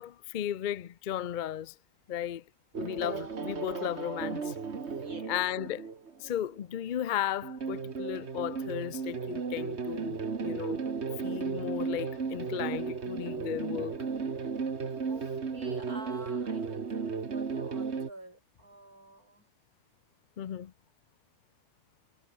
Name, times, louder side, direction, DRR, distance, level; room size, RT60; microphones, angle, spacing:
voice 1, 0.0-1.7 2.1-2.4 2.8-4.5 5.3-5.9 6.2-10.9 11.2-14.0 20.4-20.7, left 10 dB, 70° left, 0.4 m, -35 dB
sound 1, 2.7-6.6 7.4-18.1, right 5 dB, 45° right, 1.9 m, -35 dB
voice 2, 4.9-5.4 15.1-19.5, right 2 dB, 65° right, 8.0 m, -49 dB
omnidirectional pair, 1.7 m